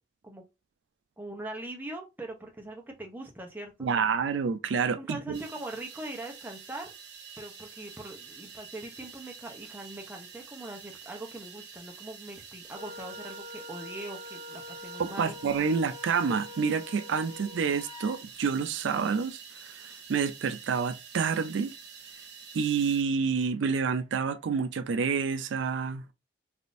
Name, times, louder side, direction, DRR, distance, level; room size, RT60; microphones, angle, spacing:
voice 1, 1.2-4.1 4.9-6.9 7.4-15.4, right 1 dB, 10° right, 0.6 m, -42 dB
voice 2, 3.8-5.4 15.0-21.7 22.5-26.1, right 5 dB, 85° right, 0.4 m, -28 dB
sound 1, 5.3-23.0, right 6 dB, 70° right, 0.8 m, -48 dB
Wind instrument woodwind instrument, 12.7-18.2, left 1 dB, 30° right, 1.2 m, -45 dB
3.5 x 2.5 x 2.5 m
head